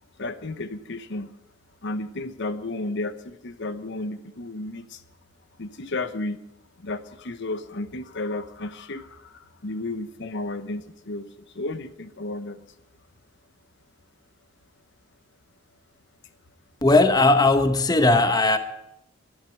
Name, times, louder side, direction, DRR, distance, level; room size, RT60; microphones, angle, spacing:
voice 1, 0.2-1.3 1.8-5.0 5.6-6.4 6.8-11.3 11.5-12.6, left 2 dB, 55° left, 0.9 m, -33 dB
voice 2, 16.8-18.6, left 2 dB, 20° left, 0.9 m, -18 dB
12.5 x 11.5 x 9.1 m
head